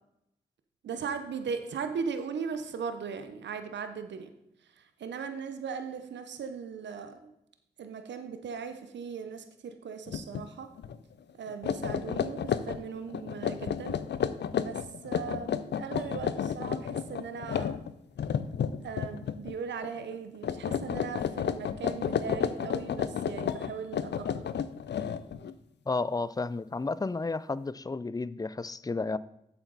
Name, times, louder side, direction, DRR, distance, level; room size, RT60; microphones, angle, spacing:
voice 1, 0.8-4.3 4.8-7.3 7.8-10.7 11.4-14.0 14.6-17.8 18.8-24.4, right 6 dB, 80° right, 9 dB, 0.9 m, -38 dB
sound 1, 10.1-10.4 10.8-11.0 11.5-19.5 19.8-20.2 20.4-25.5, left 8 dB, 75° left, 0.6 m, -32 dB
voice 2, 25.9-29.2, left 3 dB, 20° left, 18 dB, 0.5 m, -32 dB
8.1 x 7.8 x 4.0 m, 0.81 s
supercardioid pair, 45°, 18 cm